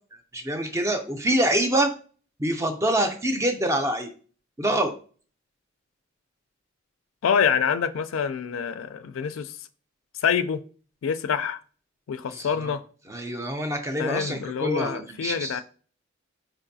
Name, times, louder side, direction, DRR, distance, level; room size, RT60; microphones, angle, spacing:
voice 1, 0.3-1.9 2.4-4.1 4.6-4.9 12.3-12.7 13.1-15.6, right 1 dB, 15° right, 0.4 m, -25 dB
voice 2, 7.2-9.6 10.2-10.6 11.0-11.6 12.1-12.8 14.0-15.6, left 7 dB, 80° left, 0.3 m, -26 dB
4.8 x 2.6 x 2.6 m
head